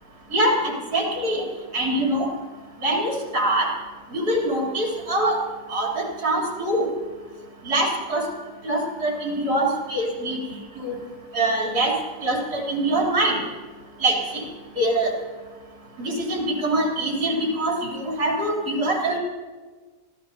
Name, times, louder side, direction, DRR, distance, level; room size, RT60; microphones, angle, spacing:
voice 1, 0.3-1.5 1.7-2.3 2.8-3.7 4.1-6.9 7.6-8.3 8.6-10.4 10.7-11.0 11.3-13.4 14.0-14.4 14.8-15.2 16.0-19.2, right 1 dB, 70° right, -3 dB, 4.2 m, -24 dB
26.0 x 14.5 x 3.0 m, 1.4 s
omnidirectional pair, 1.7 m